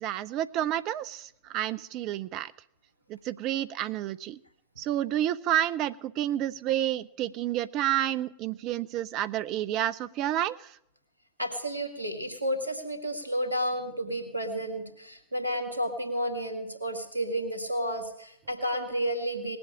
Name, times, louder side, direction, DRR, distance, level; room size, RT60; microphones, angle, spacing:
voice 1, 0.0-2.5 3.1-4.4 4.8-10.7, right 12 dB, 40° right, 14 dB, 0.5 m, -30 dB
voice 2, 11.4-19.6, equal, 85° right, 5 dB, 1.9 m, -31 dB
19.0 x 7.8 x 8.5 m, 0.77 s
figure-of-eight pair, 90°, 0 cm